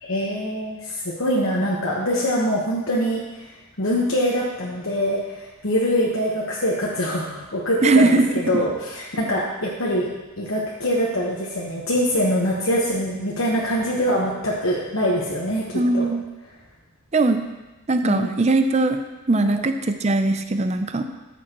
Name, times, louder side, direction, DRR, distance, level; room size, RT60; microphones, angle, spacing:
voice 1, 0.0-3.2 3.8-10.1 10.4-16.1 18.0-18.3 19.5-19.6, equal, 65° left, -4 dB, 1.2 m, -24 dB
voice 2, 7.8-8.3 15.7-16.2 17.1-17.4 17.9-19.0 19.3-21.0, right 2 dB, 30° right, 8 dB, 0.5 m, -20 dB
13.0 x 7.3 x 3.0 m, 1.1 s
head